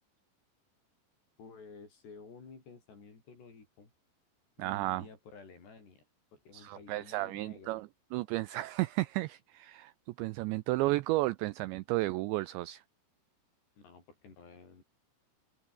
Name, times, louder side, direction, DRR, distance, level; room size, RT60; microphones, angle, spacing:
voice 1, 1.4-3.9 4.6-6.1 6.3-7.8 13.8-14.8, left 4 dB, 55° left, 9.0 m, -53 dB
voice 2, 4.6-5.1 6.5-9.9 10.2-12.8, right 19 dB, 85° right, 2.6 m, -33 dB
open air
omnidirectional pair, 5.8 m